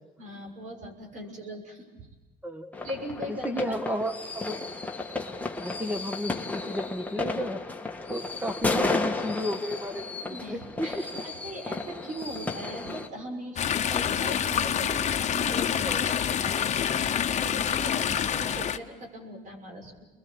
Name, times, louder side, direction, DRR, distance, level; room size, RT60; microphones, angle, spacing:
voice 1, 0.2-1.9 2.8-3.7 10.3-20.0, equal, 50° right, 2 dB, 6.4 m, -40 dB
voice 2, 2.4-2.8 3.3-4.6 5.6-7.6 8.1-10.9, equal, 10° right, 9 dB, 1.7 m, -33 dB
sound 1, 2.7-13.1, left 3 dB, 10° left, 1.8 m, -33 dB
Chatter / Stream, 13.6-18.8, left 9 dB, 45° left, 1.1 m, -27 dB
29.5 x 22.0 x 7.2 m, 1.1 s
cardioid pair, 110°, 17 cm